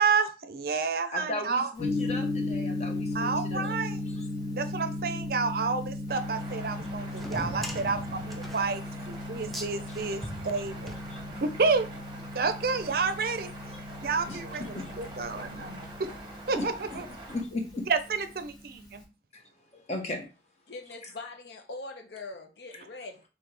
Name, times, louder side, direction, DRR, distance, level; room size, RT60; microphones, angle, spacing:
voice 1, 0.0-1.7 3.1-4.0 4.5-11.0 11.4-11.9 12.3-13.5 14.0-16.1 16.5-17.1 17.9-19.0, right 4 dB, 55° right, 0.5 m, -30 dB
voice 2, 1.1-3.7 11.1-11.2 13.7-13.8 14.3-14.4 14.7-14.9 16.5-16.6 16.9-17.0 17.3-17.9 19.3-19.4 19.7-20.3 22.7-22.8, left 2 dB, 40° left, 1.0 m, -36 dB
Gong, 1.8-19.0, left 2 dB, 20° left, 1.1 m, -36 dB
sound 1, 6.1-17.4, right 1 dB, 25° right, 0.8 m, -45 dB
sound 2, 7.1-11.7, equal, ahead, 0.5 m, -41 dB
voice 3, 20.7-23.2, left 3 dB, 70° left, 0.7 m, -42 dB
4.2 x 3.5 x 3.3 m
head